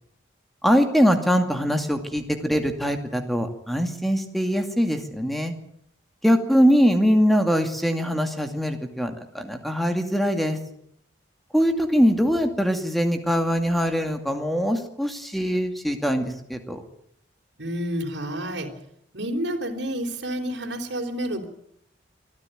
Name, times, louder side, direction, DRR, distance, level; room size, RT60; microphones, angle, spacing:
voice 1, 0.6-5.5 6.2-10.6 11.5-16.8, equal, ahead, 5 dB, 2.3 m, -22 dB
voice 2, 17.6-18.7 19.1-21.5, equal, 60° right, 2 dB, 4.0 m, -29 dB
24.0 x 15.0 x 9.2 m, 0.72 s
head